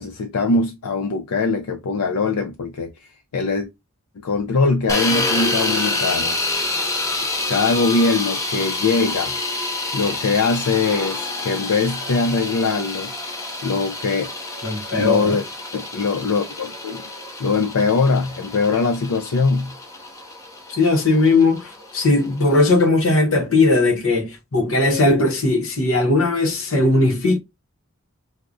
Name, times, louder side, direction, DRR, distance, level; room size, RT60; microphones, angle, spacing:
voice 1, 0.0-2.9 3.3-3.7 4.2-6.4 7.5-9.4 9.9-13.1 13.6-14.3 15.0-15.4 15.7-17.0 17.4-19.7, left 4 dB, 90° left, 0.5 m, -21 dB
sound 1, 4.9-22.8, left 2 dB, 15° left, 0.5 m, -28 dB
voice 2, 14.6-15.4 20.7-27.4, left 2 dB, 65° left, 0.9 m, -18 dB
4.6 x 2.0 x 2.5 m
head